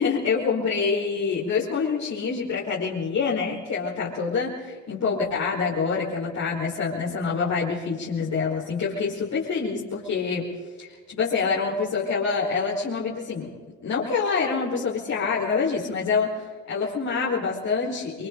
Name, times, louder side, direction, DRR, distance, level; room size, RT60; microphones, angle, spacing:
voice 1, 0.0-10.5 10.8-13.5 13.8-18.3, left 5 dB, 65° left, -6 dB, 5.0 m, -26 dB
29.0 x 23.0 x 4.0 m, 1.5 s
cardioid pair, 90°, 30 cm